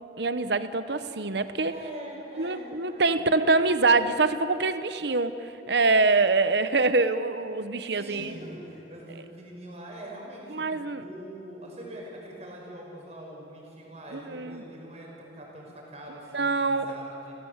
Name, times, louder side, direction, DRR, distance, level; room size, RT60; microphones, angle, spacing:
voice 1, 0.2-1.7 2.4-8.3 10.5-11.0 14.1-14.6 16.3-16.8, right 3 dB, 65° right, 11 dB, 1.0 m, -25 dB
voice 2, 1.7-3.2 7.9-10.6 11.0-17.3, right 1 dB, 35° right, -1 dB, 5.7 m, -43 dB
29.5 x 16.0 x 8.1 m, 2.9 s
head